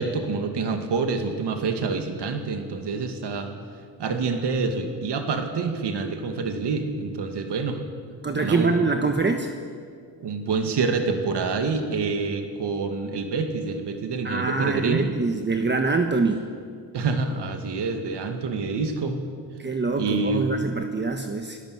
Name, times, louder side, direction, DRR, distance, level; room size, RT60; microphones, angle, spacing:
voice 1, 0.0-3.5 4.0-7.8 8.4-8.8 10.2-15.1 16.9-19.2 20.0-20.4, right 4 dB, 85° right, 6 dB, 2.4 m, -27 dB
voice 2, 8.2-9.5 14.2-16.4 19.6-21.6, right 3 dB, 25° right, 5 dB, 1.3 m, -24 dB
27.0 x 17.5 x 8.0 m, 2.2 s
wide cardioid pair, 150°, 40 cm